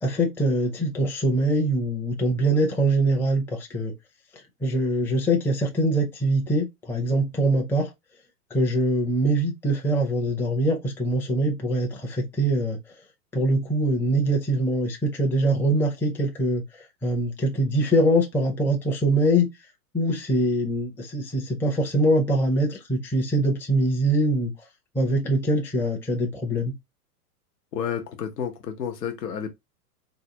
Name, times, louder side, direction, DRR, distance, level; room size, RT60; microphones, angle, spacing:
voice 1, 0.0-3.9 4.6-7.9 8.5-12.8 13.3-16.6 17.0-19.5 19.9-24.5 24.9-26.7, right 1 dB, 5° left, 0.5 m, -23 dB
voice 2, 27.7-29.5, left 8 dB, 90° left, 0.9 m, -30 dB
3.9 x 2.3 x 2.8 m
hypercardioid pair, 115°, 47 cm